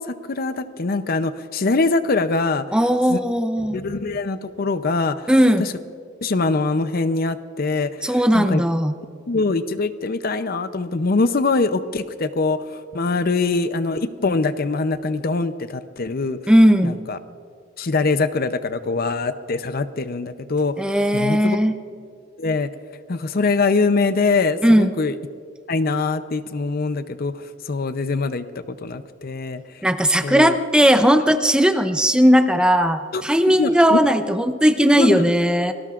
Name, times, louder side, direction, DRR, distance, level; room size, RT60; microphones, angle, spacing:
voice 1, 0.0-2.6 3.1-3.2 3.7-5.3 5.6-5.7 6.2-8.6 9.3-16.4 16.8-17.2 17.8-21.6 22.4-22.7 23.1-25.1 25.7-27.3 27.7-28.5 28.8-29.6 30.2-30.5 33.1-34.0 35.0-35.3, left 3 dB, 50° left, 11 dB, 0.6 m, -23 dB
voice 2, 2.7-3.8 5.3-5.7 8.0-8.9 16.5-17.0 20.8-21.8 24.6-24.9 29.8-35.7, equal, 5° right, 8 dB, 0.6 m, -17 dB
28.5 x 19.0 x 2.5 m, 2.3 s
head